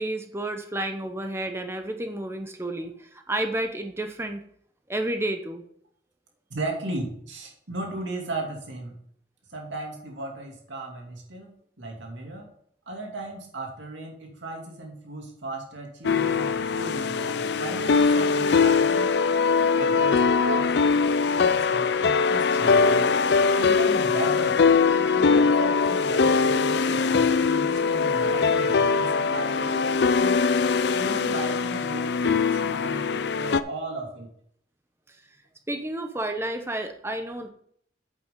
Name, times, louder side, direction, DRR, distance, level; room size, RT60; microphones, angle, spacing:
voice 1, 0.0-4.4 4.9-5.6 35.1-35.2 35.7-37.5, right 1 dB, 15° right, 6 dB, 0.8 m, -31 dB
voice 2, 6.5-9.0 9.5-11.5 11.8-12.5 12.9-19.1 19.8-20.7 21.3-23.1 23.5-24.6 25.0-30.4 30.9-34.3, right 2 dB, 80° right, 1 dB, 2.6 m, -36 dB
sound 1, 16.0-33.6, left 5 dB, 65° left, 0.4 m, -22 dB
8.8 x 8.2 x 3.8 m, 0.65 s
head